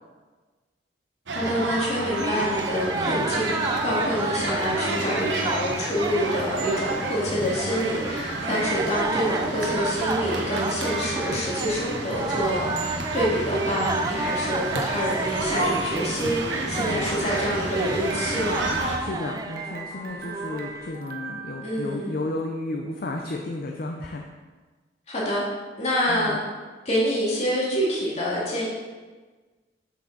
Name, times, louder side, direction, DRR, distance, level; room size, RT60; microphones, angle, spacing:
voice 1, 1.3-18.6 21.6-22.1 25.1-25.4 25.8-26.4 26.8-28.7, equal, 35° left, -6 dB, 2.3 m, -27 dB
sound 1, 1.3-19.0, right 2 dB, 80° right, 1.1 m, -31 dB
sound 2, 1.9-20.9, right 3 dB, 20° right, 0.3 m, -32 dB
voice 2, 2.9-3.4 8.4-8.7 16.8-17.1 19.0-24.3 26.1-26.4, left 2 dB, 50° left, 2 dB, 0.6 m, -33 dB
sound 3, 4.6-22.3, right 4 dB, 50° right, 0.7 m, -41 dB
7.7 x 6.0 x 4.0 m, 1.3 s
head